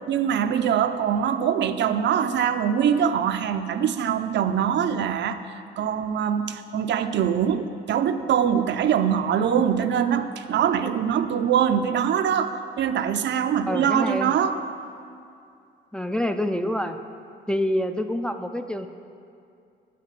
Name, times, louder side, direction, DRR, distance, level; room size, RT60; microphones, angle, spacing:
voice 1, 0.1-14.6, right 8 dB, 65° right, 9 dB, 0.5 m, -23 dB
voice 2, 13.7-14.3 15.9-17.0 17.5-18.9, equal, 5° left, 7 dB, 0.4 m, -26 dB
9.1 x 5.8 x 6.0 m, 2.5 s
cardioid pair, 90°, 20 cm